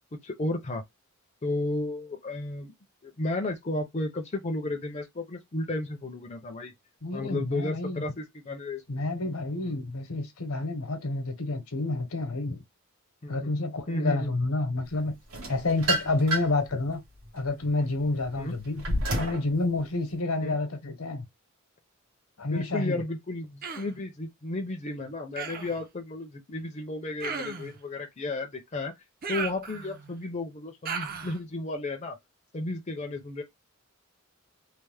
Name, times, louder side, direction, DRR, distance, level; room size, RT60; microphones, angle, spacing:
voice 1, 0.2-0.8 1.4-2.7 3.0-6.7 7.1-9.0 9.6-9.8 13.2-13.5 13.9-14.4 18.4-18.5 20.4-20.6 22.4-28.9 29.3-32.2 32.5-33.4, left 2 dB, 30° left, 0.5 m, -33 dB
voice 2, 7.0-8.0 8.9-12.6 13.3-15.1 15.5-17.0 17.3-18.8 19.1-21.2 22.4-23.0, left 2 dB, 80° left, 0.9 m, -29 dB
sound 1, 15.3-16.7 17.2-19.5, right 1 dB, 80° right, 1.3 m, -30 dB
Human voice, 23.6-24.0 25.4-25.8 27.2-27.8 29.2-30.1 30.9-31.4, right 5 dB, 45° right, 0.5 m, -36 dB
3.2 x 2.0 x 3.3 m
head